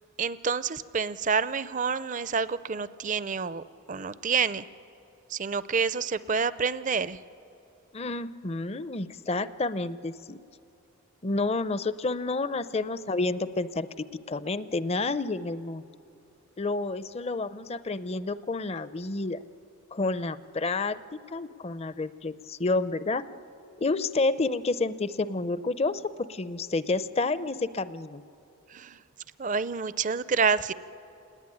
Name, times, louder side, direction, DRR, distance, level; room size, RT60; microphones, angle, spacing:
voice 1, 0.2-4.6 5.3-7.2 28.7-29.0 29.4-30.7, right 5 dB, 35° right, 16 dB, 0.5 m, -28 dB
voice 2, 7.9-10.4 11.2-13.9 14.3-15.8 16.6-19.4 19.9-23.2 23.8-28.2, left 3 dB, 30° left, 14 dB, 0.5 m, -29 dB
28.0 x 19.0 x 9.9 m, 2.8 s
head